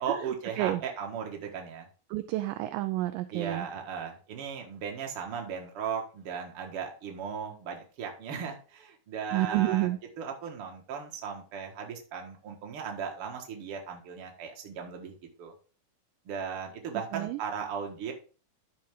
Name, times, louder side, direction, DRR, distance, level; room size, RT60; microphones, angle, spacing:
voice 1, 0.0-1.9 3.3-15.5 16.3-18.1, right 7 dB, 50° right, 2 dB, 2.0 m, -37 dB
voice 2, 2.1-3.7 9.3-10.0 17.1-17.4, right 16 dB, 85° right, 10 dB, 2.0 m, -29 dB
11.5 x 5.7 x 3.7 m, 0.37 s
omnidirectional pair, 4.3 m